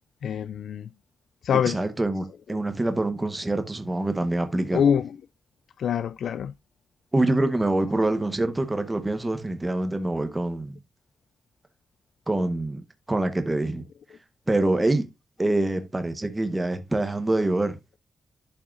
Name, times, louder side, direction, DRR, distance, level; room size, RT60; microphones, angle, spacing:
voice 1, 0.2-0.9 1.4-1.8 2.5-2.6 4.7-5.2 5.8-6.5, left 8 dB, 90° left, 0.3 m, -25 dB
voice 2, 1.7-4.8 7.1-10.7 12.3-12.8 13.1-13.8 14.5-15.1 15.4-17.8, right 2 dB, 15° right, 1.0 m, -25 dB
11.0 x 5.6 x 2.4 m
wide cardioid pair, 165°, 0 cm